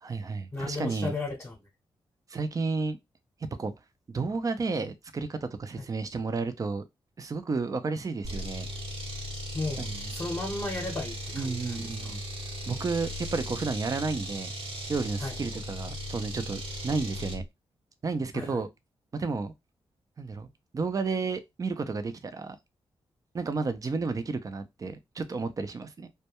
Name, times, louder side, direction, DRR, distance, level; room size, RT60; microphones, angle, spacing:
voice 1, 0.0-1.2 2.3-3.0 3.6-3.7 4.1-6.8 7.2-8.7 9.8-10.1 11.3-12.2 12.7-14.5 14.9-17.4 18.0-18.7 19.1-19.5 20.2-20.5 20.7-22.6 23.3-26.1, right 4 dB, 35° right, 0.4 m, -32 dB
voice 2, 0.5-1.6 5.8-5.9 9.5-12.1 15.2-15.3 18.3-18.6, left 2 dB, 25° left, 0.8 m, -35 dB
sound 1, 8.2-17.4, equal, 70° right, 0.9 m, -37 dB
2.2 x 2.2 x 2.9 m
cardioid pair, 75°, 10 cm